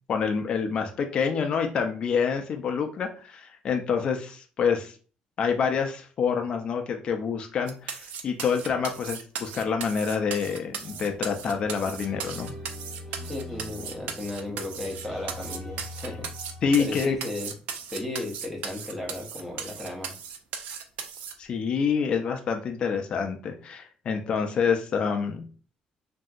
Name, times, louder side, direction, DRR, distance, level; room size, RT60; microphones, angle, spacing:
voice 1, 0.1-4.9 5.4-12.5 16.6-17.2 21.4-25.4, left 6 dB, 40° left, 4 dB, 0.3 m, -27 dB
sound 1, 7.7-21.3, right 7 dB, 80° right, 0.4 m, -37 dB
sound 2, 10.8-17.2, left 1 dB, 15° left, 1.3 m, -43 dB
voice 2, 13.2-16.3 16.8-17.5 17.9-20.1, left 2 dB, 5° right, -1 dB, 0.7 m, -35 dB
2.8 x 2.6 x 2.3 m, 0.39 s
cardioid pair, 160°, 3 cm